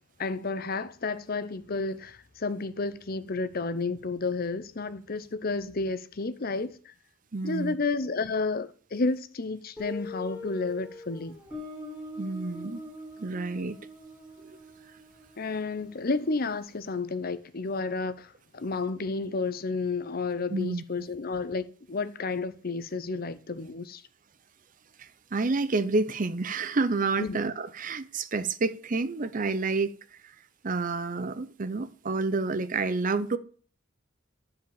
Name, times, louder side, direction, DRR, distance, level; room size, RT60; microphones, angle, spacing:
voice 1, 0.2-6.9 7.4-11.3 15.4-24.0 27.2-27.4, left 3 dB, 45° left, 0.7 m, -31 dB
voice 2, 7.3-7.8 12.2-12.8 13.2-13.8 14.4-14.5 20.5-20.8 25.0-29.9 30.6-33.4, right 3 dB, 40° right, 0.6 m, -29 dB
Guitar, 9.8-16.4, left 2 dB, 5° right, 5.7 m, -43 dB
10.5 x 5.0 x 7.1 m
head